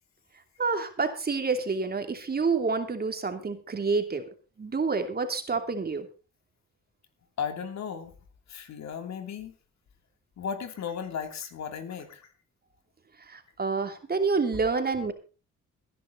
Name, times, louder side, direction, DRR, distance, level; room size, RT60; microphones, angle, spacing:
voice 1, 0.6-4.2 4.6-6.1 13.3-15.1, right 4 dB, 30° right, 7 dB, 2.8 m, -28 dB
voice 2, 7.4-8.1 8.5-9.5 10.4-12.3, left 7 dB, 65° left, 7 dB, 3.0 m, -35 dB
18.5 x 11.0 x 4.0 m, 0.33 s
cardioid pair, 90°, 30 cm